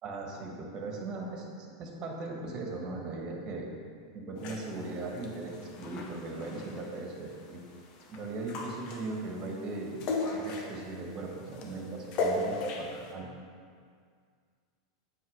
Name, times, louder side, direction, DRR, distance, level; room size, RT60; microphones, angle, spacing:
voice 1, 0.0-3.7 4.1-7.6 8.1-10.0 10.3-13.3, right 2 dB, 35° right, 1 dB, 1.6 m, -38 dB
sound 1, 4.4-13.1, left 2 dB, 50° left, 1.2 m, -38 dB
8.9 x 4.8 x 5.0 m, 2.1 s
hypercardioid pair, 110°, 2 cm